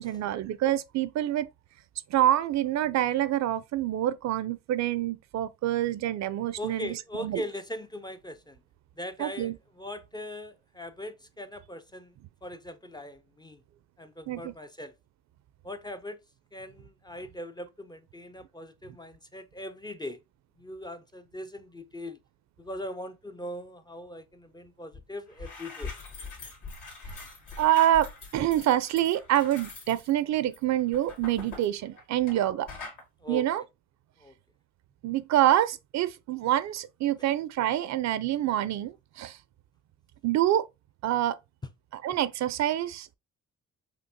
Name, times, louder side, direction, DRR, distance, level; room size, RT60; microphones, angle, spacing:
voice 1, 0.0-1.5 2.1-7.4 9.2-9.6 14.3-14.5 27.6-32.7 33.3-33.6 35.0-39.4 40.2-40.6 41.0-41.4 41.9-43.2, right 12 dB, 65° right, 0.4 m, -26 dB
voice 2, 6.6-8.6 9.0-12.1 12.4-13.6 14.0-14.9 15.6-16.2 16.5-20.2 20.6-22.2 22.6-25.9 33.2-33.5 34.2-34.3 37.2-37.3, left 1 dB, 15° left, 0.3 m, -40 dB
sound 1, 24.9-25.0 25.3-32.4 32.7-33.0, left 4 dB, 85° left, 1.8 m, -43 dB
5.7 x 2.0 x 2.6 m
cardioid pair, 90°, 30 cm